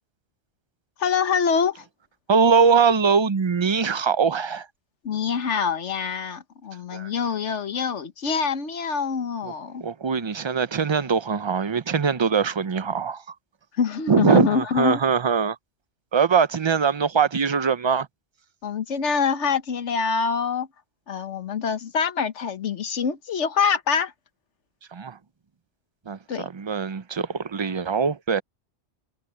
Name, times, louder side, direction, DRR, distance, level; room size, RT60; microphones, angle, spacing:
voice 1, 1.0-1.8 5.0-9.8 13.8-15.0 18.6-20.7 21.1-24.1 26.3-26.5, left 6 dB, 85° left, 1.4 m, -25 dB
voice 2, 2.3-4.7 6.9-7.1 9.4-9.5 9.8-13.2 14.1-15.6 16.1-18.1 24.9-25.2 26.1-28.4, right 6 dB, 30° right, 0.5 m, -22 dB
omnidirectional pair, 1.2 m